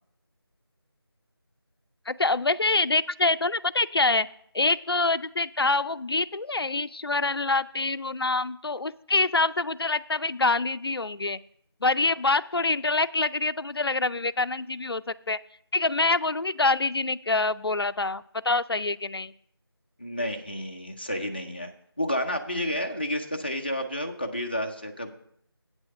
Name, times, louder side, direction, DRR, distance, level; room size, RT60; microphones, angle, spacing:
voice 1, 2.1-4.3 4.5-11.4 11.8-15.4 15.7-19.3, left 3 dB, 65° left, 14 dB, 0.4 m, -25 dB
voice 2, 20.0-21.7 22.0-25.1, left 1 dB, 25° left, 4 dB, 0.6 m, -30 dB
8.8 x 6.2 x 6.4 m, 0.68 s
figure-of-eight pair, 165°, 14 cm